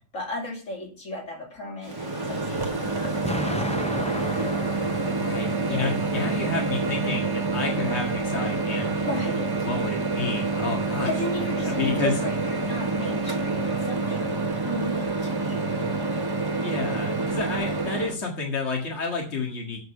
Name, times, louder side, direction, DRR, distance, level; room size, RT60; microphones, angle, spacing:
voice 1, 0.1-4.1 5.7-6.1 9.0-9.5 11.0-14.4 14.6-16.0, left 1 dB, 80° left, 0 dB, 2.8 m, -35 dB
sound 1, 1.8-7.0, left 1 dB, 25° left, 2.4 m, -49 dB
Microwave oven, 1.9-18.1, right 3 dB, 20° right, 1.2 m, -27 dB
Explosion, 3.2-6.2, left 1 dB, 5° left, 0.6 m, -33 dB
voice 2, 5.2-9.1 9.6-11.1 11.6-12.1 16.6-19.8, left 4 dB, 60° left, 1 dB, 2.2 m, -30 dB
8.0 x 6.7 x 6.6 m, 0.41 s
omnidirectional pair, 1.3 m